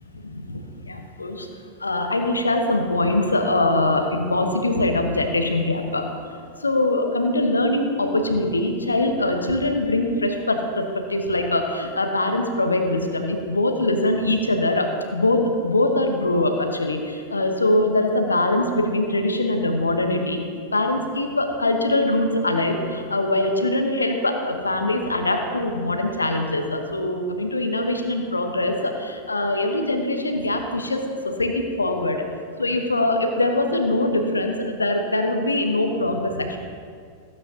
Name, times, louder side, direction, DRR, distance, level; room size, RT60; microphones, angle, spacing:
voice 1, 0.1-1.5 1.8-20.4 20.7-32.2 32.6-36.6, left 2 dB, 80° left, 4 dB, 1.0 m, -23 dB
15.0 x 8.6 x 2.8 m, 2.2 s
figure-of-eight pair, 90°, 0 cm